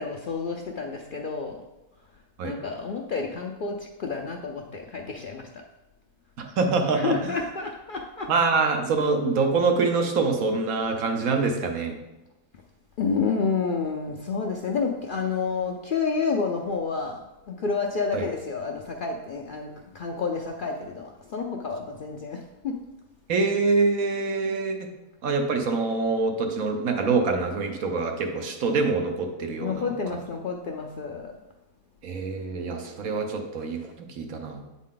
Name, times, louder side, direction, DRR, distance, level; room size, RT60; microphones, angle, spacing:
voice 1, 0.0-1.6 2.4-5.5 6.9-8.3 13.0-22.8 29.6-31.3, left 5 dB, 65° left, 1 dB, 0.5 m, -29 dB
voice 2, 6.4-7.3 8.3-12.0 18.1-18.2 23.3-24.9 25.2-29.9 32.0-34.6, right 4 dB, 90° right, 3 dB, 1.3 m, -25 dB
8.2 x 4.1 x 3.8 m, 0.99 s
omnidirectional pair, 1.4 m